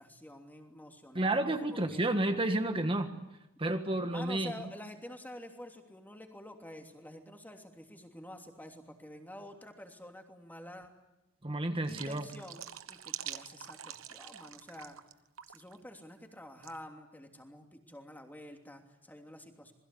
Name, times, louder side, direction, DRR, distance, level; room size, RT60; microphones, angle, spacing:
voice 1, 0.0-2.0 4.1-10.9 11.9-15.0 15.5-19.7, left 1 dB, 10° left, 3 dB, 3.0 m, -49 dB
voice 2, 1.1-3.1 3.6-4.5 11.4-12.3, right 1 dB, 25° right, 6 dB, 1.6 m, -31 dB
sound 1, 11.8-15.1 15.4-15.8 16.6-16.8, right 10 dB, 75° right, 1.2 m, -45 dB
27.5 x 21.0 x 8.6 m, 0.93 s
head